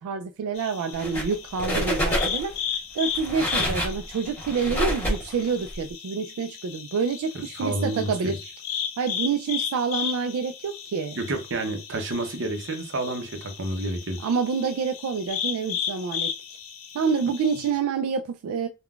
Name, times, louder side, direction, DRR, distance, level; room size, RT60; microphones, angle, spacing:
voice 1, 0.0-2.5 2.9-8.4 9.0-11.2 14.2-16.3 16.9-18.7, right 5 dB, 85° right, 0.3 m, -27 dB
sound 1, 0.5-17.7, left 8 dB, 70° left, 0.6 m, -35 dB
sound 2, 0.9-1.3 1.6-2.5 3.1-5.7, equal, 10° left, 1.4 m, -27 dB
voice 2, 7.6-8.3 11.2-14.3, right 2 dB, 55° right, 0.7 m, -29 dB
3.6 x 2.2 x 2.3 m
head